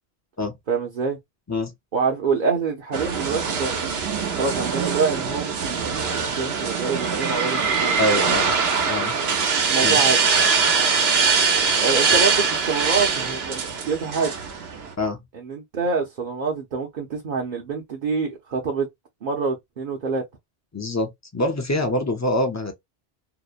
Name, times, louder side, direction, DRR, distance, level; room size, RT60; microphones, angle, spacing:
voice 1, 0.7-1.2 1.9-3.9 4.3-8.4 9.0-9.3 9.7-10.2 11.8-14.3 15.3-18.9 19.2-20.2, right 5 dB, 55° right, 0.8 m, -26 dB
sound 1, 2.9-14.9, right 5 dB, 80° right, 1.0 m, -22 dB
voice 2, 8.0-8.5 8.8-9.2 9.8-10.0 15.0-15.2 20.7-22.7, left 1 dB, 25° left, 0.4 m, -25 dB
2.7 x 2.0 x 2.3 m
omnidirectional pair, 1.0 m